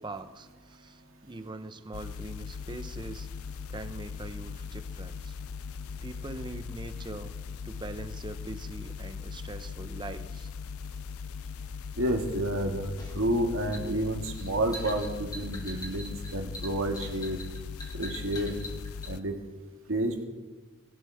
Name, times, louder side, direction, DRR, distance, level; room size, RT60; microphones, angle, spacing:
voice 1, 0.0-3.3 3.7-5.4 6.0-7.3 7.6-10.5, right 2 dB, 20° right, 9 dB, 0.8 m, -42 dB
sound 1, 1.9-19.2, left 5 dB, 90° left, 0.4 m, -39 dB
voice 2, 12.0-12.9 13.1-17.4 17.9-18.6 19.1-19.3 19.9-20.2, right 1 dB, 70° right, 2 dB, 2.1 m, -30 dB
sound 2, 13.0-19.1, left 1 dB, 20° left, 2.1 m, -43 dB
21.5 x 12.0 x 3.6 m, 1.3 s
head